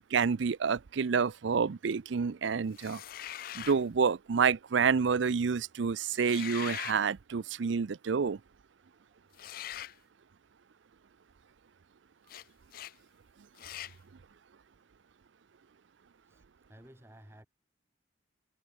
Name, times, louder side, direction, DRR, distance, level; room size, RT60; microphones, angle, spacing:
voice 1, 0.0-3.0 3.5-8.4, right 6 dB, 75° right, 0.5 m, -28 dB
sound 1, 2.7-3.8 6.1-7.0 9.3-10.0 12.3-12.4 12.7-12.9 13.6-14.0, left 12 dB, 50° left, 0.3 m, -41 dB
voice 2, 8.8-9.2 16.2-17.5, equal, 15° right, 7.6 m, -57 dB
head